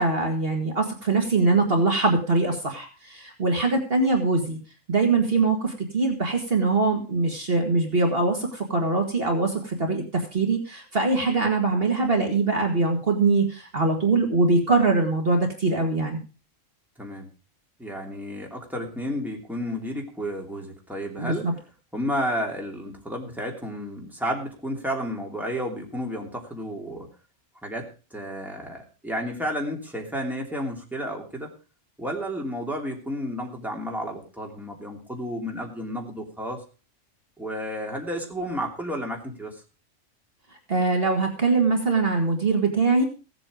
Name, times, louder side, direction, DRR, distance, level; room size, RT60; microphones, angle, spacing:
voice 1, 0.0-4.6 4.9-16.2 21.2-21.5 40.7-43.0, right 3 dB, 50° right, 2 dB, 2.1 m, -23 dB
voice 2, 17.8-21.5 21.9-27.1 27.6-31.5 32.0-36.6 37.4-39.5, equal, ahead, 0 dB, 2.9 m, -32 dB
16.5 x 8.1 x 5.0 m, 0.35 s
omnidirectional pair, 1.3 m